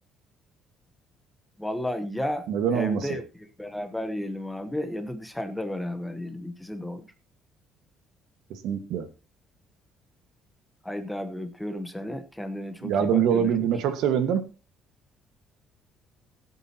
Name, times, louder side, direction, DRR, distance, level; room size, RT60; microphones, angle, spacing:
voice 1, 1.6-2.5 2.7-3.2 3.6-7.1 10.8-13.7, left 1 dB, 5° left, 8 dB, 1.0 m, -33 dB
voice 2, 2.5-3.1 8.5-9.1 12.8-14.5, right 8 dB, 70° right, 10 dB, 1.5 m, -24 dB
20.0 x 8.4 x 2.9 m, 0.31 s
cardioid pair, 170°, 0 cm